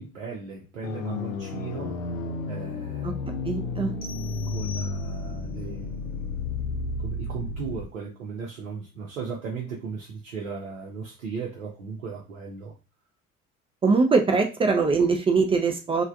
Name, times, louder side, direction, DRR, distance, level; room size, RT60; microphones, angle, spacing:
voice 1, 0.0-2.0 2.5-3.1 4.5-5.9 7.0-12.7, right 5 dB, 80° right, -3 dB, 0.7 m, -36 dB
sound 1, 0.8-7.9, left 3 dB, 80° left, 0.5 m, -32 dB
voice 2, 3.4-4.0 13.8-16.0, right 4 dB, 15° right, 4 dB, 0.3 m, -22 dB
sound 2, 4.0-5.5, left 5 dB, 25° left, 0.8 m, -44 dB
3.2 x 2.2 x 2.4 m, 0.31 s
figure-of-eight pair, 60°, 39 cm